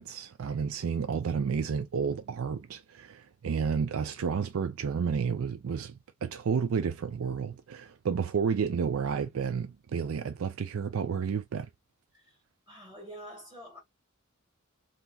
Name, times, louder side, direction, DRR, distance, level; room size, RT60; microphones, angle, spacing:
voice 1, 0.0-11.7, right 6 dB, 75° right, 0.4 m, -31 dB
voice 2, 12.7-13.8, equal, 20° right, 1.7 m, -47 dB
3.5 x 2.9 x 2.3 m
head